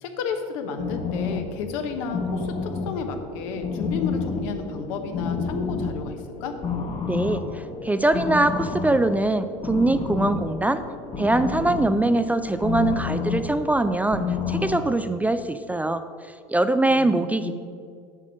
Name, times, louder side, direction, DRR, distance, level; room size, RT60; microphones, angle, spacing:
voice 1, 0.0-2.5 2.8-6.5 16.9-17.5, left 5 dB, 75° left, 6 dB, 1.0 m, -32 dB
sound 1, 0.8-14.8, left 5 dB, 30° left, 1.1 m, -30 dB
voice 2, 7.1-10.8 11.2-16.0 16.5-17.5, right 2 dB, 10° right, 10 dB, 0.3 m, -22 dB
7.4 x 6.3 x 5.3 m, 2.2 s
supercardioid pair, 100°, 17 cm